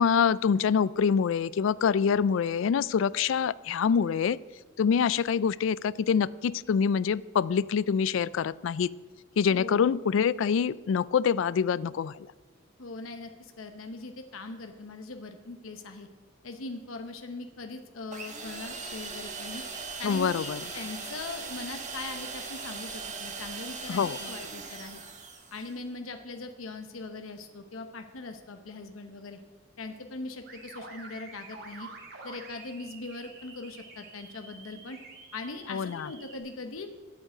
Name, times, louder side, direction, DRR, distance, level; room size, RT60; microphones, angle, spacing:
voice 1, 0.0-4.4 4.8-8.9 9.4-12.2 20.0-20.6 23.9-24.3 35.7-36.1, left 6 dB, 65° left, 20 dB, 0.3 m, -25 dB
voice 2, 9.5-9.9 12.8-16.1 16.4-19.6 20.0-25.0 25.5-29.4 29.8-31.9 32.2-35.0 35.3-36.9, left 3 dB, 80° left, 6 dB, 0.9 m, -40 dB
sound 1, 18.1-25.7, right 4 dB, 35° right, 1.4 m, -39 dB
sound 2, 30.5-36.4, right 4 dB, 50° right, 1.9 m, -48 dB
9.0 x 8.6 x 7.9 m, 1.3 s
head